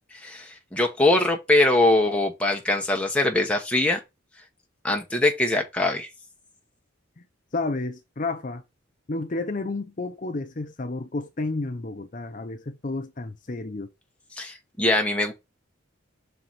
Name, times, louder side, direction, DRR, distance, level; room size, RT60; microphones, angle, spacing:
voice 1, 0.2-4.0 4.8-6.1 14.4-15.3, left 2 dB, 5° left, 1.2 m, -22 dB
voice 2, 7.5-8.6 9.1-13.9, left 3 dB, 40° left, 0.6 m, -31 dB
5.9 x 4.6 x 4.1 m
head